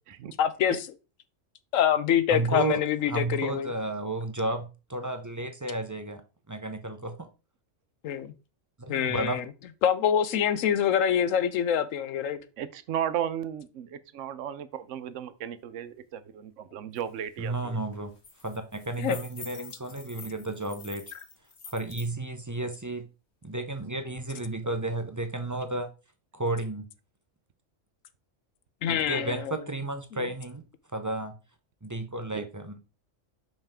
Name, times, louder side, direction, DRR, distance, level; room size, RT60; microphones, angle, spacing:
voice 1, 0.4-0.8 1.7-3.7 8.0-8.3 8.9-9.4 9.8-12.4 19.0-19.2 28.8-29.5, left 9 dB, 85° left, 1.1 m, -25 dB
voice 2, 2.3-2.8 3.1-6.2 6.5-7.3 8.8-9.4 17.4-18.1 18.4-21.0 21.7-23.0 23.4-25.9 26.3-26.8 29.1-30.6 30.9-31.3 31.8-32.8, right 2 dB, 25° right, 0.4 m, -32 dB
voice 3, 12.6-17.8 28.9-29.1 32.3-32.5, right 10 dB, 75° right, 1.0 m, -35 dB
sound 1, 17.0-17.1 17.4-17.6 17.9-22.1, left 4 dB, 60° left, 1.6 m, -47 dB
5.7 x 5.6 x 3.5 m
omnidirectional pair, 1.3 m